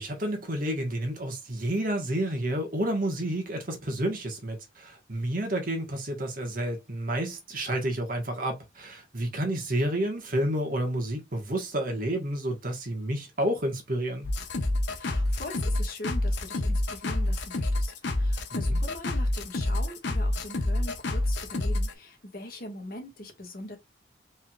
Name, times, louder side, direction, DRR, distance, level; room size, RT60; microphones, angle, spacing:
voice 1, 0.0-14.3 18.5-18.8, right 1 dB, 45° right, 1.3 m, -30 dB
sound 1, 14.2-21.9, left 1 dB, 70° left, 0.9 m, -28 dB
voice 2, 15.0-23.8, left 1 dB, 50° left, 1.5 m, -41 dB
4.4 x 3.5 x 2.3 m
head